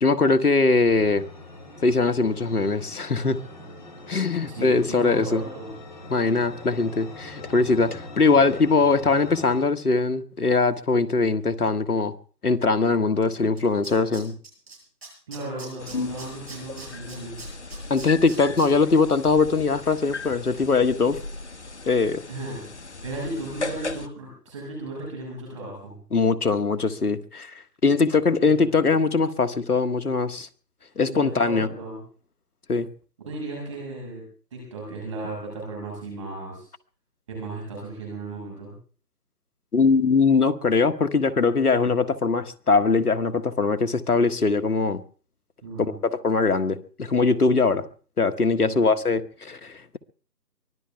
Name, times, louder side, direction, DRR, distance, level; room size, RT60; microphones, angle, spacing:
voice 1, 0.0-1.2 1.8-3.4 4.1-5.4 6.1-12.1 12.4-14.3 17.9-21.2 21.9-22.2 26.1-27.5 27.8-30.5 30.9-31.7 32.7-32.9 39.7-45.0 45.8-47.8 48.2-50.0, left 4 dB, 65° left, 1.7 m, -21 dB
sound 1, 0.8-9.7, left 2 dB, 30° left, 4.7 m, -42 dB
voice 2, 4.4-5.7 15.3-17.4 22.3-22.7 23.0-26.0 28.4-28.7 31.1-32.0 33.2-34.2 34.5-36.7 37.3-38.7 45.6-45.9 48.6-49.0, right 2 dB, 20° right, 6.5 m, -35 dB
Tools, 13.2-13.3 13.6-14.7 15.0-18.7 19.1-19.2, right 4 dB, 40° right, 7.9 m, -42 dB
sound 2, 15.8-24.1, left 3 dB, 45° left, 1.2 m, -36 dB
24.0 x 16.5 x 3.6 m
figure-of-eight pair, 170°, 49 cm